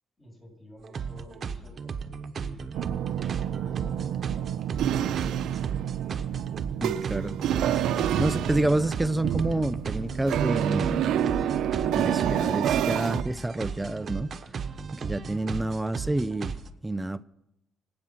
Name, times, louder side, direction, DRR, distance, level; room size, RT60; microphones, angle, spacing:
voice 1, 0.2-4.6, equal, 25° left, 7.5 m, -53 dB
sound 1, 0.8-16.7, right 6 dB, 50° right, 1.1 m, -36 dB
sound 2, 2.7-13.2, right 10 dB, 80° right, 0.8 m, -28 dB
voice 2, 6.8-7.3 8.2-11.1 12.0-14.4 14.9-16.6 16.8-17.2, right 1 dB, 10° right, 0.6 m, -28 dB
25.0 x 8.7 x 5.9 m
cardioid pair, 90°, 0 cm